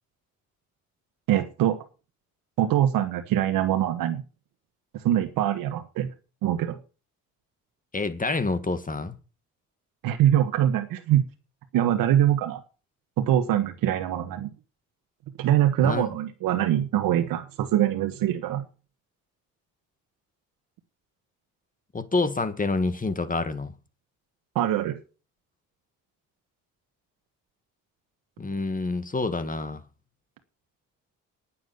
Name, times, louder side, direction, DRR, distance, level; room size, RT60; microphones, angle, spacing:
voice 1, 1.3-1.8 2.6-4.2 4.9-6.1 6.4-6.8 10.0-11.2 11.7-12.6 13.2-14.5 15.4-18.6 24.5-25.0, right 11 dB, 85° right, 1.4 m, -23 dB
voice 2, 7.9-9.1 15.8-16.2 21.9-23.7 28.4-29.8, left 3 dB, 25° left, 2.0 m, -27 dB
9.6 x 7.6 x 8.0 m
cardioid pair, 75°, 33 cm